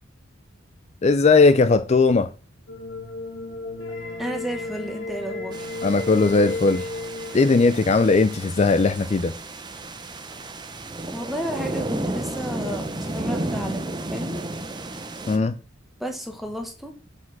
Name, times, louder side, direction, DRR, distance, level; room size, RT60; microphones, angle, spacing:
voice 1, 1.0-2.3 5.8-6.9 7.3-9.3 15.3-15.5, left 3 dB, 35° left, 0.4 m, -18 dB
sound 1, 2.7-8.7, left 2 dB, 70° left, 1.9 m, -34 dB
voice 2, 4.2-5.6 11.1-14.4 16.0-16.9, equal, ahead, 1.3 m, -32 dB
sound 2, 5.5-15.4, right 2 dB, 20° right, 0.7 m, -33 dB
6.1 x 5.0 x 5.9 m
head